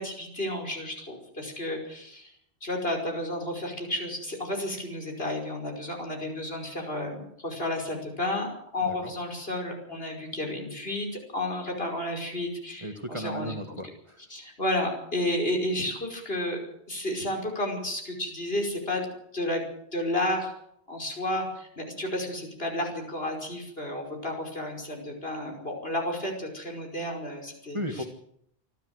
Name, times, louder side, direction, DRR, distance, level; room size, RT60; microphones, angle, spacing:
voice 1, 0.0-2.3 2.6-8.5 8.7-13.8 14.3-16.6 16.9-19.6 19.9-20.5 20.9-28.1, left 1 dB, 60° left, 2 dB, 5.6 m, -32 dB
voice 2, 12.8-14.2 27.7-28.0, equal, 25° right, 6 dB, 1.7 m, -35 dB
26.0 x 12.5 x 7.9 m, 0.72 s
omnidirectional pair, 1.1 m